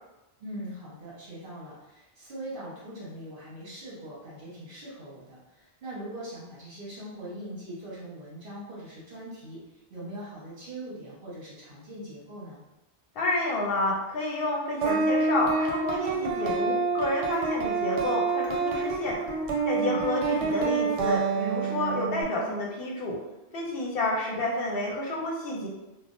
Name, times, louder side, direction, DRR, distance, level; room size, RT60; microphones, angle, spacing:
voice 1, 0.4-12.6 19.7-20.1, right 1 dB, 55° right, -8 dB, 1.3 m, -41 dB
voice 2, 13.2-19.2 19.7-23.2 23.5-25.7, left 2 dB, 65° left, -2 dB, 0.8 m, -30 dB
sound 1, 14.8-22.2, right 4 dB, 80° right, 0.9 m, -27 dB
3.3 x 2.1 x 2.5 m, 0.98 s
omnidirectional pair, 1.1 m